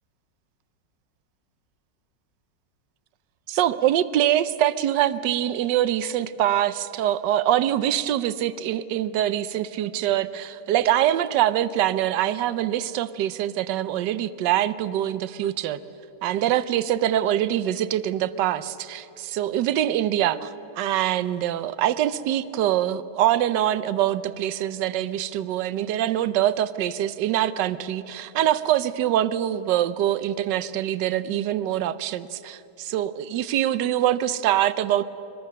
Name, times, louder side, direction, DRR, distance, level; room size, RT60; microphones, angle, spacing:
voice 1, 3.5-15.8 16.2-35.0, right 12 dB, 80° right, 15 dB, 1.3 m, -24 dB
25.0 x 20.5 x 6.7 m, 2.8 s
omnidirectional pair, 1.9 m